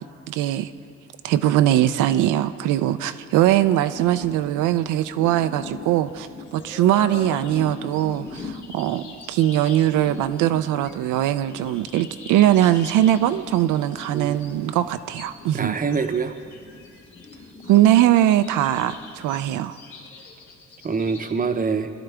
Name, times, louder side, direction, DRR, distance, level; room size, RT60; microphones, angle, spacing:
voice 1, 0.3-0.7 1.2-15.7 17.7-19.8, right 12 dB, 85° right, 11 dB, 0.5 m, -21 dB
sound 1, 3.4-19.5, left 3 dB, 30° left, 1.2 m, -42 dB
sound 2, 6.1-21.3, left 4 dB, 80° left, 2.0 m, -45 dB
voice 2, 14.1-14.8 15.5-16.3 19.6-19.7 20.8-21.9, right 5 dB, 30° right, 8 dB, 0.7 m, -26 dB
20.5 x 11.0 x 3.4 m, 2.3 s
cardioid pair, 90°, 30 cm